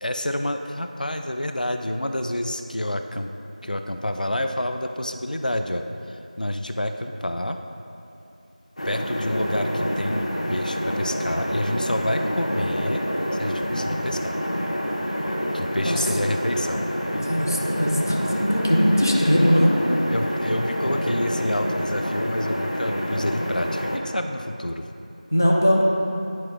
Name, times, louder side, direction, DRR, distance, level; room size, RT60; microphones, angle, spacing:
voice 1, 0.0-3.3 3.6-7.6 8.8-13.0 13.3-14.3 15.5-16.8 20.1-24.8, left 1 dB, 85° left, 6 dB, 0.4 m, -28 dB
sound 1, 8.8-24.0, equal, 60° left, 0.8 m, -27 dB
voice 2, 17.1-19.7 25.3-25.8, equal, 25° left, -2 dB, 0.6 m, -20 dB
9.5 x 4.5 x 3.8 m, 2.8 s
figure-of-eight pair, 175°, 4 cm